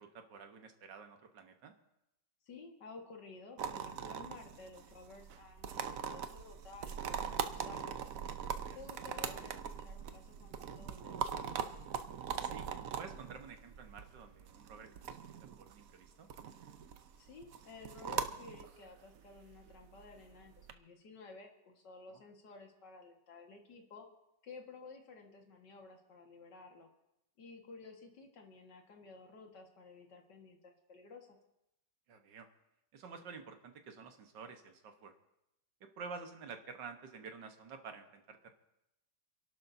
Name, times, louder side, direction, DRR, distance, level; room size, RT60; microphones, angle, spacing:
voice 1, 0.0-1.7 8.7-8.8 12.4-12.7 13.0-15.2 15.6-16.3 22.1-22.2 32.1-32.5 32.9-35.1 36.0-38.5, right 5 dB, 80° right, 6 dB, 1.8 m, -50 dB
voice 2, 2.4-8.1 8.7-11.8 17.2-24.1 24.4-26.9 27.4-31.4, left 3 dB, 75° left, 2 dB, 2.3 m, -54 dB
sound 1, 3.6-20.7, right 7 dB, 60° right, 1.0 m, -42 dB
28.5 x 11.5 x 2.7 m, 0.86 s
omnidirectional pair, 1.9 m